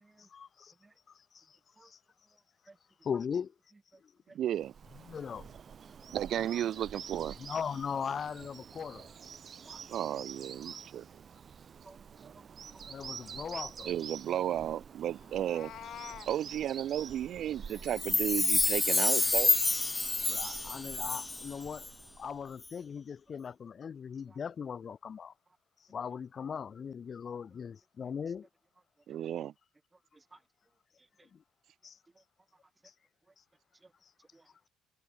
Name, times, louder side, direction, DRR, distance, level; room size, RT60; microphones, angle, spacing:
voice 1, 0.3-0.7 1.1-2.0 3.0-3.5 5.0-5.5 7.4-9.1 12.9-13.9 20.3-21.9 22.2-25.3 25.9-28.5 31.3-31.4 31.8-32.0 32.8-32.9 34.0-34.1, left 7 dB, 35° left, 0.9 m, -39 dB
voice 2, 4.3-4.7 6.1-7.4 9.9-11.1 13.9-15.7 16.3-19.6 29.1-29.5, right 11 dB, 55° right, 3.5 m, -33 dB
Bird vocalization bird call bird song, 4.5-22.5, right 7 dB, 35° right, 6.2 m, -48 dB
voice 3, 11.8-12.5 12.7-12.9 24.3-24.4 30.1-30.4 34.3-34.7, right 3 dB, 15° right, 1.1 m, -58 dB
Meow, 15.2-16.3, left 11 dB, 55° left, 1.5 m, -46 dB
Chime, 17.9-21.5 21.8-21.9, left 2 dB, 15° left, 0.7 m, -28 dB
cardioid pair, 145°, 0 cm